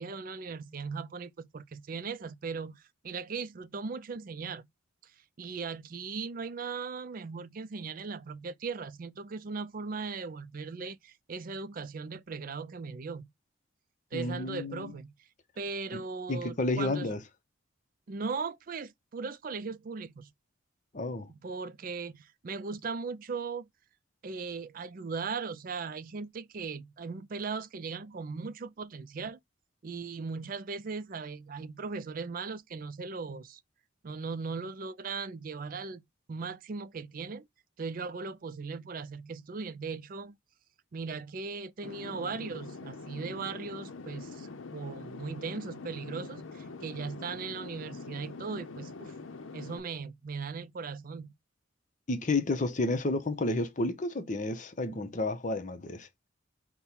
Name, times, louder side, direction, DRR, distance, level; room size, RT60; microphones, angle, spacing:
voice 1, 0.0-4.7 5.0-5.1 5.4-13.3 14.1-15.1 15.6-17.1 18.1-20.3 21.3-23.7 24.2-29.4 29.8-33.6 34.0-37.5 37.8-40.4 40.9-49.1 49.5-51.3, right 4 dB, 45° right, 0.4 m, -38 dB
voice 2, 14.1-14.9 15.9-16.0 16.3-17.2 20.9-21.3 52.1-56.1, left 2 dB, 40° left, 0.7 m, -31 dB
sound 1, 41.8-49.8, left 3 dB, 85° left, 0.6 m, -44 dB
5.3 x 2.2 x 4.4 m
head